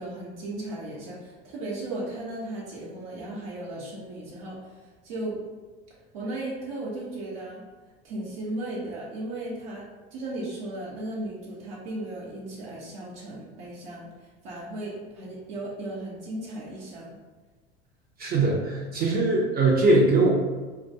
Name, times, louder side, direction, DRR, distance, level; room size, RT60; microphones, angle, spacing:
voice 1, 0.0-5.4 6.1-7.6 8.0-9.8 10.1-17.2, right 1 dB, 70° right, -5 dB, 0.7 m, -36 dB
voice 2, 18.2-20.3, right 2 dB, 30° right, -2 dB, 0.5 m, -21 dB
2.3 x 2.1 x 2.6 m, 1.3 s
hypercardioid pair, 85°, 30 cm